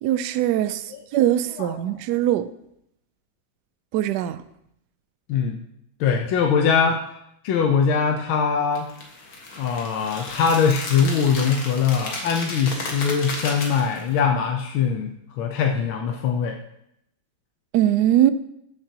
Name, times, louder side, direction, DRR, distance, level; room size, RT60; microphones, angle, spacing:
voice 1, 0.0-2.5 3.9-4.4 17.7-18.3, right 12 dB, 75° right, 13 dB, 1.0 m, -21 dB
voice 2, 6.0-7.0 7.4-8.9 9.6-16.6, left 6 dB, 90° left, 3 dB, 1.6 m, -22 dB
sound 1, 8.7-14.2, left 2 dB, 75° left, 2.2 m, -34 dB
13.5 x 6.7 x 2.8 m, 0.77 s
omnidirectional pair, 2.2 m